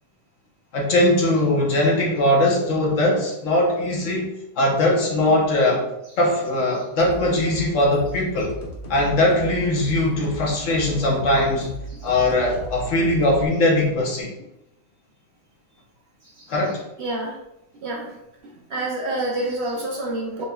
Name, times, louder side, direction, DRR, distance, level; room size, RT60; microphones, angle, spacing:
voice 1, 0.7-4.3 4.6-5.8 6.2-8.5 8.9-11.7 12.0-14.3 16.5-16.8, left 1 dB, 65° left, -2 dB, 1.2 m, -20 dB
sound 1, 7.0-13.5, right 1 dB, 40° left, 0.6 m, -36 dB
voice 2, 16.2-16.6 17.0-17.4 17.8-18.1 18.7-20.4, right 2 dB, 60° right, -1 dB, 0.8 m, -28 dB
4.7 x 3.3 x 2.3 m, 0.86 s
omnidirectional pair, 1.5 m